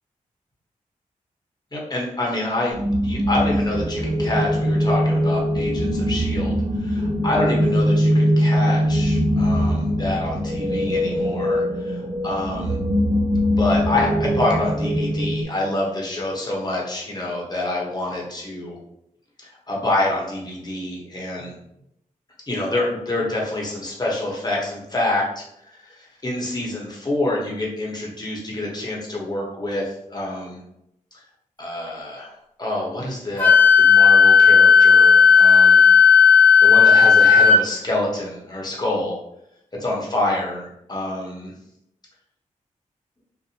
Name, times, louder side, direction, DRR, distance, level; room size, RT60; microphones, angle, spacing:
voice 1, 1.7-12.8 13.5-18.8 19.4-21.5 22.5-30.6 31.6-32.3 32.6-35.9 36.6-39.2 39.8-41.5, left 2 dB, 30° left, -3 dB, 1.0 m, -27 dB
sound 1, 2.7-15.4, equal, 30° right, 0.4 m, -21 dB
Wind instrument woodwind instrument, 33.4-37.6, left 6 dB, 15° left, 0.6 m, -12 dB
2.7 x 2.1 x 2.7 m, 0.79 s
cardioid pair, 45°, 14 cm